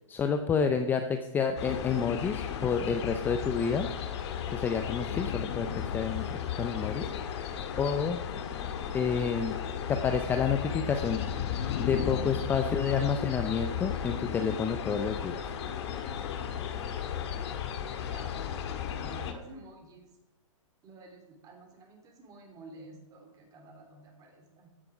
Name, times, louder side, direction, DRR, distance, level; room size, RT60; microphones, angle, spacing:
voice 1, 0.1-3.9 4.5-6.3 6.6-7.1 7.8-8.2 8.9-9.6 9.9-11.2 11.8-15.5, left 6 dB, 10° left, 6 dB, 0.6 m, -29 dB
sound 1, 1.6-19.3, left 8 dB, 55° left, 1.8 m, -34 dB
voice 2, 18.1-20.1 20.8-24.7, right 2 dB, 20° right, 3 dB, 3.2 m, -50 dB
15.0 x 10.0 x 5.0 m, 0.94 s
hypercardioid pair, 150°, 17 cm